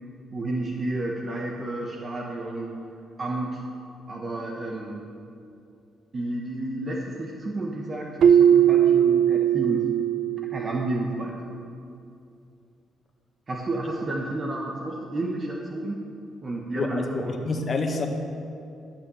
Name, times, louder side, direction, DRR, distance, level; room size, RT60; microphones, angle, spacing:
voice 1, 0.3-2.8 3.2-3.6 4.1-5.1 6.1-9.9 10.4-11.5 13.5-16.0 16.4-17.6, right 2 dB, 35° right, 0 dB, 1.4 m, -31 dB
Keyboard (musical), 8.2-11.0, right 9 dB, 65° right, 0.5 m, -19 dB
voice 2, 16.8-18.1, left 3 dB, 40° left, 3 dB, 1.6 m, -28 dB
12.0 x 8.8 x 7.1 m, 2.5 s
cardioid pair, 90°, 0 cm